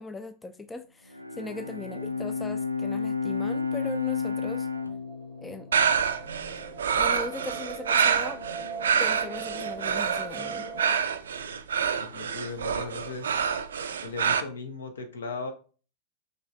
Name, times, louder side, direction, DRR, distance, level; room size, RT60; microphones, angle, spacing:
voice 1, 0.0-4.7 5.4-5.8 7.0-8.4 9.0-10.7, left 2 dB, 10° left, 0.3 m, -39 dB
Bowed string instrument, 1.1-6.6, left 5 dB, 90° left, 0.3 m, -32 dB
sound 1, 4.7-11.0, right 5 dB, 45° left, 1.3 m, -40 dB
sound 2, 5.7-14.4, right 7 dB, 65° right, 0.4 m, -27 dB
voice 2, 12.0-13.3 14.0-15.5, left 4 dB, 70° left, 0.8 m, -37 dB
5.2 x 3.1 x 2.6 m
figure-of-eight pair, 90°, 0 cm